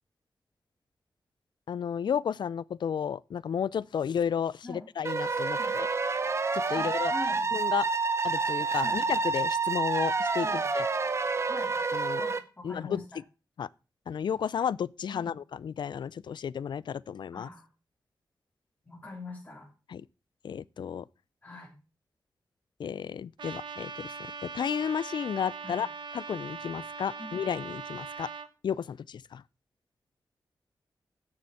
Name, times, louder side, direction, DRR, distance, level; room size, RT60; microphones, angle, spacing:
voice 1, 1.7-5.9 6.5-7.1 7.5-7.9 8.2-10.9 11.9-12.2 12.6-13.0 13.6-13.7 14.1-17.5 19.9-20.0 20.4-21.0 22.8-24.1 24.4-25.9 26.1-28.3 28.6-29.4, left 8 dB, 75° left, 0.4 m, -32 dB
sound 1, 5.0-12.4, right 4 dB, 35° right, 0.8 m, -28 dB
voice 2, 6.7-7.5 8.8-9.0 10.4-10.6 11.5-11.7 12.2-13.0 15.1-15.3 17.3-17.7 18.8-19.7 21.4-21.7 25.6-25.8 27.2-27.3, left 2 dB, 20° left, 3.1 m, -43 dB
Trumpet, 23.4-28.5, right 5 dB, 85° right, 1.1 m, -41 dB
9.7 x 6.9 x 5.8 m
wide cardioid pair, 140°, 8 cm